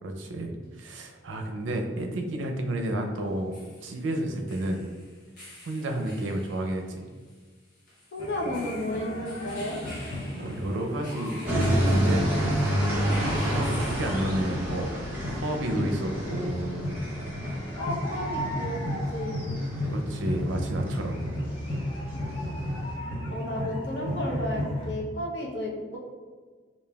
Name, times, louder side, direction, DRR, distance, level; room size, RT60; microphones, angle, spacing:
voice 1, 0.0-3.6 3.8-4.8 5.7-7.1 10.3-14.9 15.3-16.9 19.9-21.2, right 1 dB, 90° right, 3 dB, 0.5 m, -31 dB
sound 1, 0.6-0.7 3.2-14.8, left 1 dB, 45° left, 1.1 m, -49 dB
voice 2, 8.1-9.8 17.8-18.8 19.1-19.4 23.3-26.0, left 1 dB, 70° left, -2 dB, 0.7 m, -32 dB
sound 2, 8.2-24.9, left 1 dB, 25° left, 0.6 m, -34 dB
sound 3, 11.5-22.9, equal, 10° right, 0.6 m, -30 dB
5.0 x 2.6 x 2.3 m, 1.5 s
head